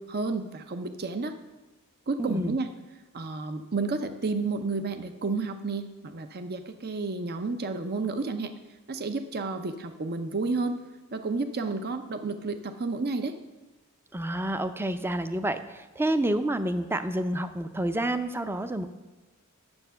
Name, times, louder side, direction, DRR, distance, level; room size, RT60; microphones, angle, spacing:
voice 1, 0.0-1.3 2.1-2.7 3.1-8.5 8.9-10.8 11.1-13.3, right 3 dB, 45° right, 8 dB, 0.7 m, -31 dB
voice 2, 2.2-2.5 14.1-18.9, right 1 dB, 10° right, 10 dB, 0.5 m, -29 dB
9.6 x 7.5 x 6.9 m, 1.1 s
head